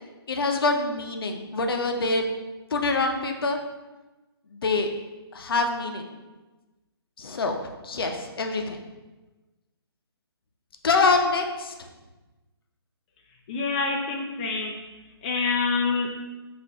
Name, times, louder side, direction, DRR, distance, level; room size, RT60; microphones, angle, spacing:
voice 1, 0.3-2.3 2.7-3.6 4.5-4.9 5.3-6.1 7.2-7.6 7.8-8.8 10.8-11.7, left 3 dB, 60° left, 4 dB, 0.6 m, -25 dB
voice 2, 13.5-14.8 15.2-16.2, left 4 dB, 20° left, 0 dB, 0.3 m, -26 dB
4.3 x 2.6 x 4.7 m, 1.2 s
figure-of-eight pair, 140°, 14 cm